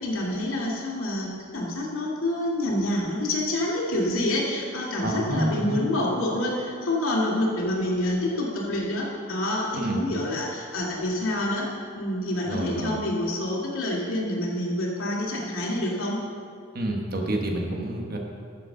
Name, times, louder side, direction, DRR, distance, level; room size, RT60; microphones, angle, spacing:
voice 1, 0.0-11.7 12.0-16.2, left 1 dB, 90° left, -4 dB, 2.2 m, -27 dB
voice 2, 5.0-5.8 9.7-10.0 12.5-13.0 16.7-18.2, right 1 dB, 45° right, 1 dB, 1.2 m, -28 dB
13.0 x 6.9 x 3.8 m, 2.3 s
head